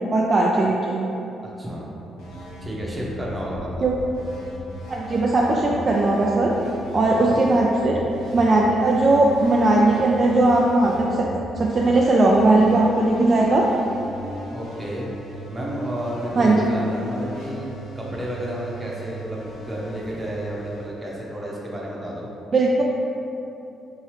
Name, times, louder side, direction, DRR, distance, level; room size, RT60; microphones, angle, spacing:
voice 1, 0.1-1.0 3.8-3.9 4.9-6.5 6.9-8.0 8.3-11.3 11.6-13.7 16.4-16.6 22.5-22.8, right 2 dB, 40° right, -2 dB, 0.3 m, -18 dB
voice 2, 1.4-1.9 2.6-3.9 7.2-7.5 14.5-15.1 15.5-22.3, equal, 15° right, -4 dB, 0.9 m, -31 dB
sound 1, 2.2-21.7, equal, 85° left, 0.9 m, -37 dB
4.4 x 2.9 x 3.1 m, 2.9 s
cardioid pair, 90°, 0 cm